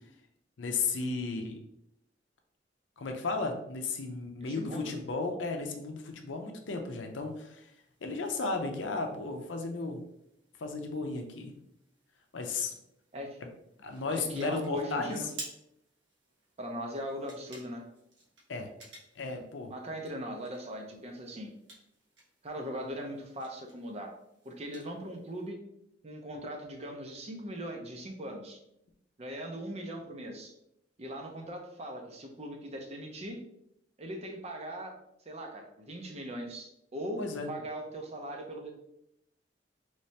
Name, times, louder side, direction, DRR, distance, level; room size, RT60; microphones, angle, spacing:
voice 1, 0.6-1.6 3.0-7.6 8.0-10.0 10.6-11.5 12.3-12.7 13.8-15.2 18.5-18.7 19.2-19.7 37.2-37.5, left 3 dB, 80° left, 4 dB, 0.6 m, -34 dB
voice 2, 4.4-4.9 13.1-13.3 14.3-15.3 16.6-17.8 19.7-21.5 22.4-24.1 24.4-25.6 26.0-28.6 29.2-30.5 31.0-33.4 34.0-34.9 35.3-37.2 37.5-38.7, equal, 35° right, 2 dB, 0.6 m, -39 dB
sound 1, 7.1-25.5, right 2 dB, 70° right, 1.1 m, -54 dB
3.2 x 3.1 x 2.8 m, 0.78 s
head